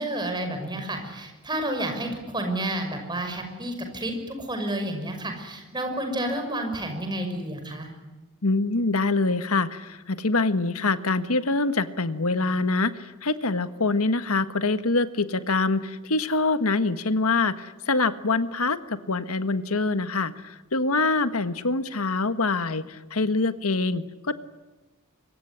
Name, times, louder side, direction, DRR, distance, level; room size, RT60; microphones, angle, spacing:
voice 1, 0.0-7.9, right 1 dB, 20° right, 5 dB, 6.1 m, -30 dB
voice 2, 8.4-24.3, left 3 dB, 85° left, 11 dB, 1.5 m, -25 dB
25.5 x 23.5 x 10.0 m, 1.1 s
head